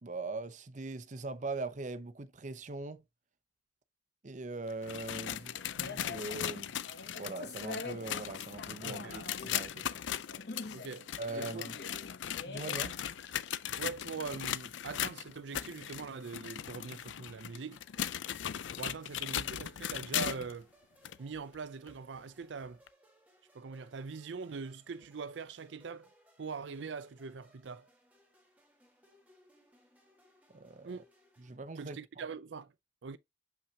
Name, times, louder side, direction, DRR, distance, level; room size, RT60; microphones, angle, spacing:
voice 1, 0.0-3.0 4.2-6.7 7.2-9.9 11.2-11.8 12.4-13.0 30.5-31.0 31.4-32.0, right 3 dB, 40° right, 0.6 m, -41 dB
sound 1, 4.7-20.6 21.0-21.2 21.9-22.0 22.9-23.0, left 10 dB, 90° left, 0.5 m, -38 dB
sound 2, 5.2-16.1, left 3 dB, 60° left, 1.0 m, -47 dB
voice 2, 8.8-9.2 10.7-11.1 11.3-11.6 13.8-17.8 18.8-20.7 21.2-22.8 23.5-26.1 26.4-27.9 30.8-31.0 31.8-32.7 33.0-33.2, right 5 dB, 85° right, 0.5 m, -42 dB
sound 3, 16.8-31.6, equal, 10° right, 2.1 m, -66 dB
7.0 x 5.7 x 2.8 m
head